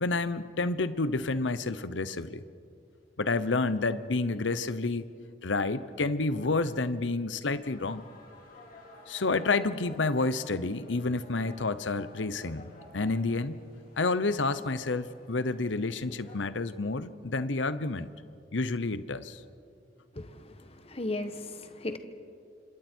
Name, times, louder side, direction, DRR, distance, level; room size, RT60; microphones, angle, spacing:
voice 1, 0.0-2.4 3.2-5.0 5.4-8.0 9.1-13.6 14.0-18.1 18.5-19.4, left 3 dB, 90° left, 13 dB, 0.9 m, -29 dB
sound 1, 7.6-16.4, left 2 dB, 50° left, 4.3 m, -53 dB
voice 2, 20.2-22.0, left 2 dB, 35° left, 8 dB, 1.3 m, -36 dB
29.5 x 26.5 x 4.6 m, 2.4 s
head